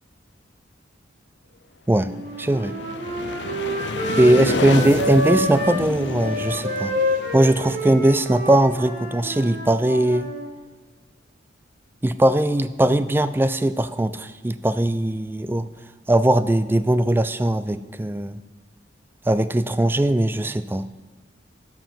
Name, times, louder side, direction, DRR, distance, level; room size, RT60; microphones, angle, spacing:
Wind instrument woodwind instrument, 2.0-5.8 6.2-10.4, equal, 50° right, 1.8 m, -28 dB
sound 1, 2.1-8.9, left 3 dB, 65° left, 0.6 m, -30 dB
voice 1, 2.4-2.8 4.2-6.9 7.3-10.3 12.0-15.7 16.1-18.4 19.3-20.9, right 1 dB, 10° right, 14 dB, 0.3 m, -20 dB
11.5 x 4.8 x 7.1 m, 1.4 s
head